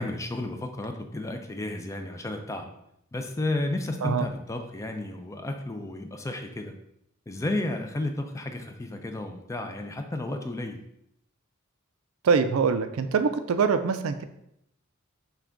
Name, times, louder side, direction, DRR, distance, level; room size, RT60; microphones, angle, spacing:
voice 1, 0.0-2.7 3.1-6.7 7.3-10.8, left 2 dB, 15° left, 5 dB, 0.4 m, -32 dB
voice 2, 12.2-14.2, right 5 dB, 85° right, 10 dB, 0.4 m, -24 dB
5.8 x 2.3 x 3.7 m, 0.78 s
head